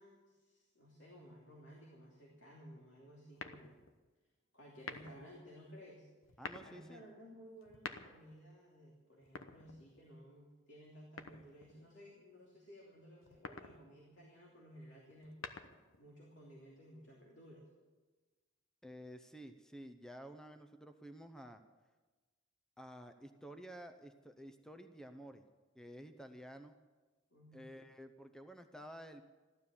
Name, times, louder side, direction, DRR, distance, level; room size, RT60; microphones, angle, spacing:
voice 1, 0.0-3.8 4.5-6.1 6.6-15.5 16.0-17.6 27.3-27.8, equal, 60° left, -3 dB, 3.0 m, -56 dB
sound 1, 3.4-4.0 4.7-5.3 6.2-6.8 7.6-8.4 9.2-10.1 11.2-11.8 13.2-13.8 15.1-16.0, left 4 dB, 85° left, 1.1 m, -48 dB
voice 2, 6.4-7.0 18.8-21.6 22.8-25.4 25.7-26.7 27.5-29.2, equal, 5° left, 7 dB, 0.6 m, -52 dB
15.5 x 12.0 x 7.1 m, 1.3 s
head